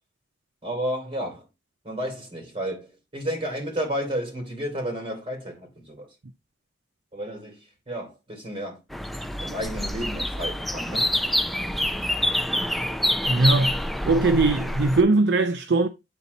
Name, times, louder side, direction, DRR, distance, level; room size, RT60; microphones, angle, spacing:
voice 1, 0.6-1.5 1.8-6.1 7.1-7.6 7.9-8.8 9.4-11.1, equal, 35° right, 2.9 m, -32 dB
sound 1, 8.9-15.0, left 1 dB, ahead, 0.4 m, -27 dB
voice 2, 13.3-13.8 14.1-15.9, right 2 dB, 70° right, 0.6 m, -20 dB
9.0 x 4.1 x 4.0 m
head